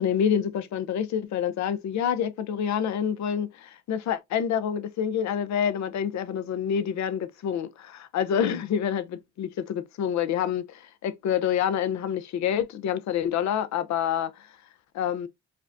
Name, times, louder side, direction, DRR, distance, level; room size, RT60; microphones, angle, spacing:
voice 1, 0.0-14.3 14.9-15.3, left 8 dB, 65° left, 0.6 m, -27 dB
4.9 x 2.1 x 2.5 m
cardioid pair, 90°, 30 cm